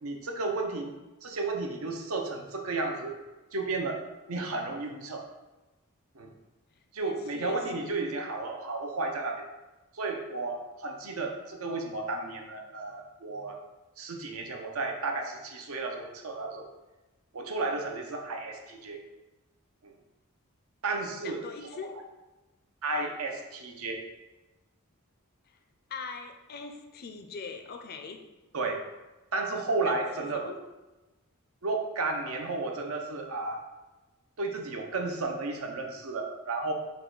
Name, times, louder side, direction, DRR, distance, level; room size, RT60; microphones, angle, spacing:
voice 1, 0.0-0.9 1.2-3.2 3.5-4.0 4.3-5.2 6.1-6.3 6.9-9.4 9.9-13.6 14.0-16.7 17.3-19.0 19.8-19.9 20.8-21.4 22.8-24.0 28.5-28.8 29.3-30.5 31.6-33.6 34.4-36.7, right 3 dB, 70° right, 3 dB, 0.6 m, -33 dB
voice 2, 7.0-8.0 21.2-22.0 25.5-25.6 25.9-28.2 29.8-30.6, left 5 dB, 45° left, 6 dB, 0.4 m, -42 dB
5.5 x 2.3 x 3.8 m, 1.1 s
head